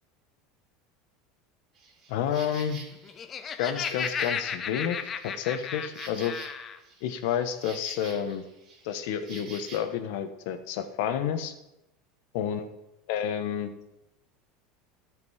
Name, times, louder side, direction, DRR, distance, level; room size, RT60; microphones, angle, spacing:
Insect, 1.7-9.8, right 4 dB, 40° right, 2.6 m, -48 dB
voice 1, 2.1-2.8 3.6-6.4 7.0-8.5 8.8-11.5 12.3-12.7 13.1-13.7, left 9 dB, 70° left, 9 dB, 0.9 m, -30 dB
Laughter, 2.9-6.8, left 7 dB, 30° left, 0.6 m, -34 dB
12.5 x 5.2 x 4.8 m, 0.90 s
supercardioid pair, 130°, 0 cm